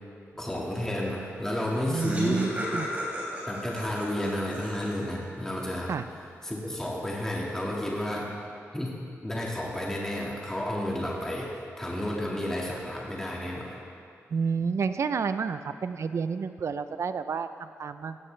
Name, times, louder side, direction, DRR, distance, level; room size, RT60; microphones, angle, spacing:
voice 1, 0.4-2.8 3.5-5.9 6.4-8.3 8.7-9.0 9.2-13.8, left 1 dB, 10° left, -3 dB, 1.9 m, -31 dB
Laughter, 1.3-1.4 1.6-5.2, equal, 30° right, 3.6 m, -36 dB
voice 2, 1.9-2.9 5.9-6.0 14.3-18.2, right 5 dB, 60° right, 11 dB, 0.6 m, -30 dB
16.0 x 15.5 x 3.3 m, 2.4 s
wide cardioid pair, 110°, 5 cm